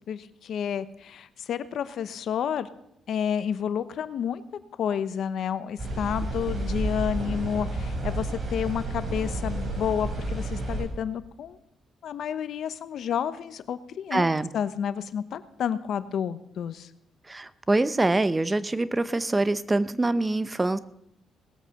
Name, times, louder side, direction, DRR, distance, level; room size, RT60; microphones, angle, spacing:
voice 1, 0.1-2.7 3.1-4.4 4.8-11.6 12.0-14.3 14.5-16.9, left 8 dB, 65° left, 13 dB, 0.9 m, -30 dB
sound 1, 5.8-10.8, right 2 dB, 45° right, 4.5 m, -31 dB
voice 2, 14.1-14.5 17.3-20.8, right 2 dB, 20° right, 15 dB, 0.7 m, -24 dB
18.5 x 8.3 x 6.6 m, 0.79 s
cardioid pair, 90°, 0 cm